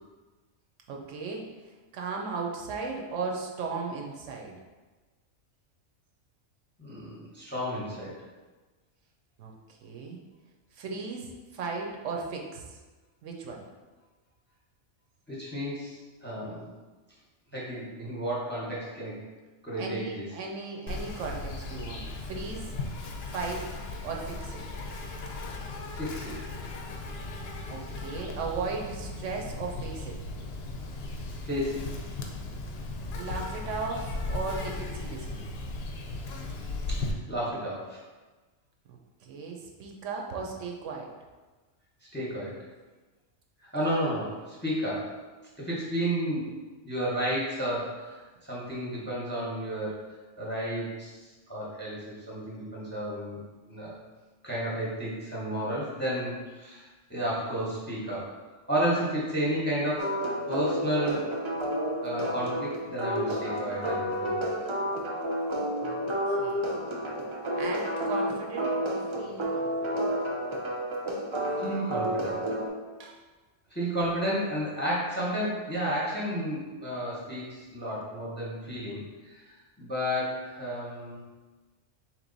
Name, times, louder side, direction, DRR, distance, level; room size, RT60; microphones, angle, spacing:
voice 1, 0.9-1.4 1.9-4.6 9.4-9.5 9.8-10.2 10.8-12.8 13.2-13.6 19.8-22.7 23.3-23.6 24.0-24.6 27.7-30.2 33.2-35.4 38.9-41.1 65.8-66.0 66.3-66.7 67.6-70.1 73.0-73.2, right 4 dB, 75° right, 1 dB, 0.9 m, -36 dB
voice 2, 6.8-8.2 15.3-16.7 17.5-19.2 19.6-20.2 25.9-26.5 31.4-31.9 36.9-38.0 42.1-42.6 43.7-45.2 45.6-46.5 46.8-50.0 50.4-51.2 51.5-53.4 53.7-54.0 54.4-58.4 58.7-60.2 60.5-61.3 62.0-64.5 71.6-72.4 73.7-79.4 79.8-81.2, equal, 10° left, -6 dB, 0.8 m, -32 dB
Insect, 20.9-37.1, left 2 dB, 65° left, 0.7 m, -37 dB
sound 1, 60.0-72.7, equal, 50° right, 0.3 m, -30 dB
3.7 x 3.0 x 3.9 m, 1.3 s
omnidirectional pair, 1.3 m